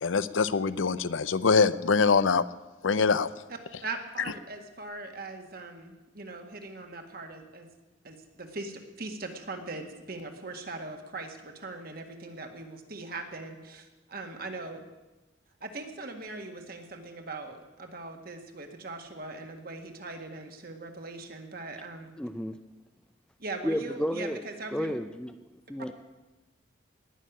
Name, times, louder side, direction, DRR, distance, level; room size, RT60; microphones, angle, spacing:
voice 1, 0.0-2.4 2.8-3.3, left 5 dB, 90° left, 15 dB, 0.6 m, -24 dB
voice 2, 3.5-7.7 8.0-14.8 15.6-22.1 23.4-24.9, right 3 dB, 50° right, 5 dB, 1.8 m, -40 dB
voice 3, 22.2-22.6 23.6-24.4 24.7-25.3 25.7-25.9, equal, 5° left, 9 dB, 0.5 m, -31 dB
18.5 x 6.6 x 10.0 m, 1.1 s
head